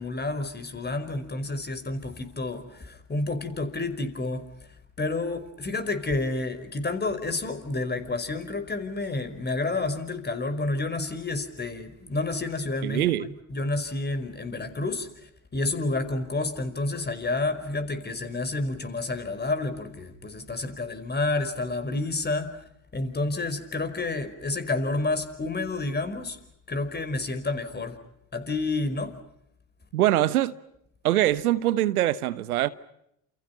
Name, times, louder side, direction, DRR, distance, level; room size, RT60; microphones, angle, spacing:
voice 1, 0.0-4.4 5.0-22.6 22.9-26.4 26.7-28.0 28.3-29.1, left 2 dB, 25° left, 5.0 m, -30 dB
voice 2, 12.8-13.3 29.9-30.5 31.0-32.7, right 14 dB, 85° right, 1.1 m, -23 dB
29.5 x 28.5 x 5.4 m
hypercardioid pair, 70°, 43 cm